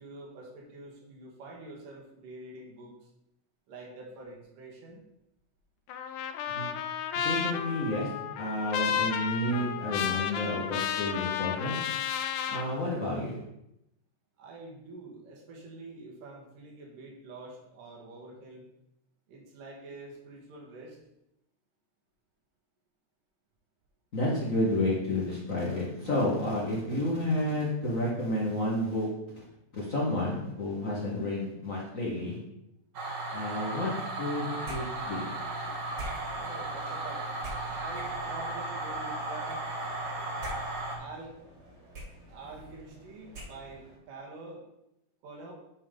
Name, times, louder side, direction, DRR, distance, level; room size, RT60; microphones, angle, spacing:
voice 1, 0.0-3.1 3.7-5.0 14.4-18.7 19.3-21.0 36.4-37.3 37.6-39.6 40.9-41.4 42.3-44.7 45.2-45.5, right 2 dB, 85° right, -1 dB, 3.2 m, -46 dB
Trumpet, 5.9-12.6, left 8 dB, 85° left, 2.1 m, -32 dB
voice 2, 7.2-8.1 8.4-11.8 12.5-13.4 24.1-29.1 29.7-32.4 33.3-33.9 34.2-35.3, left 1 dB, 65° left, -4 dB, 0.7 m, -30 dB
sound 1, 32.9-41.0, right 2 dB, 60° right, 1.1 m, -35 dB
sound 2, 34.6-44.0, right 1 dB, 35° right, 2.0 m, -47 dB
9.2 x 5.5 x 3.7 m, 0.84 s
omnidirectional pair, 3.7 m